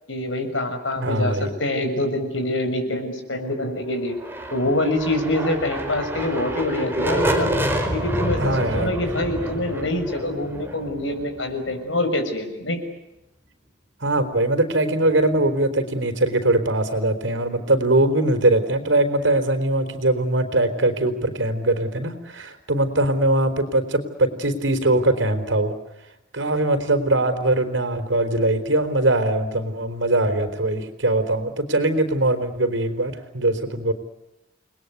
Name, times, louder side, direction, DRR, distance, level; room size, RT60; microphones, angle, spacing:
voice 1, 0.1-4.1 4.5-7.5 7.9-12.8, left 1 dB, 85° left, 6 dB, 6.4 m, -25 dB
voice 2, 1.0-1.5 8.4-8.9 14.0-25.7 26.3-33.9, right 2 dB, 80° right, 7 dB, 4.2 m, -21 dB
sound 1, 4.1-11.9, right 1 dB, 10° right, 4.6 m, -27 dB
29.5 x 21.0 x 8.3 m, 0.91 s
head